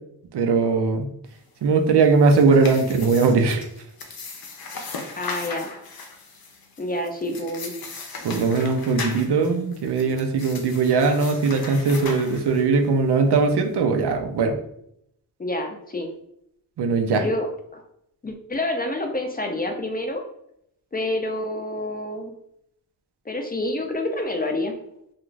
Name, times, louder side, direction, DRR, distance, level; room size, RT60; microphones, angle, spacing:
voice 1, 0.3-1.1 1.6-3.7 8.2-14.6 16.8-17.3, right 4 dB, 85° right, 5 dB, 0.5 m, -20 dB
sound 1, 2.0-12.9, left 4 dB, 65° left, 0.6 m, -38 dB
voice 2, 5.2-5.7 6.8-7.7 15.4-16.1 17.1-17.5 17.7-17.8 18.2-20.2 20.9-22.3 23.3-24.8, left 1 dB, 25° left, 4 dB, 0.4 m, -28 dB
2.4 x 2.4 x 3.1 m, 0.74 s
wide cardioid pair, 80°, 39 cm